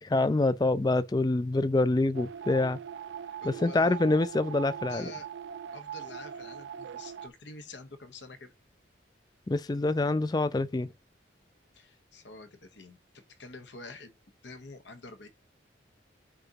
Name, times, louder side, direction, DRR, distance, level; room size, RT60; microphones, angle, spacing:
voice 1, 0.0-2.8 3.4-5.1 9.5-10.9, left 2 dB, 20° left, 0.3 m, -26 dB
sound 1, 2.1-7.3, right 8 dB, 70° right, 0.3 m, -41 dB
voice 2, 3.3-4.0 4.9-5.3 5.7-8.5 11.7-14.1 14.4-15.3, left 3 dB, 70° left, 1.1 m, -47 dB
10.0 x 3.9 x 2.9 m
head